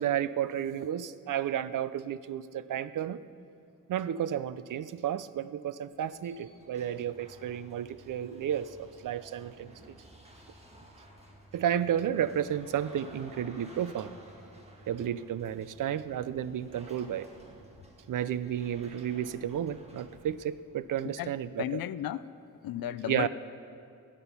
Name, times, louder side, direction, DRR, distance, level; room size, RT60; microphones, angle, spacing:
voice 1, 0.0-3.2 3.9-9.7 11.5-14.1 14.9-17.3 18.1-21.8 23.0-23.3, right 10 dB, 65° right, 15 dB, 0.5 m, -32 dB
sound 1, 5.9-21.1, right 1 dB, 20° right, 1.6 m, -54 dB
voice 2, 21.6-22.2 22.6-23.3, left 12 dB, 80° left, 15 dB, 0.5 m, -34 dB
16.0 x 9.9 x 5.5 m, 2.4 s
wide cardioid pair, 130°, 34 cm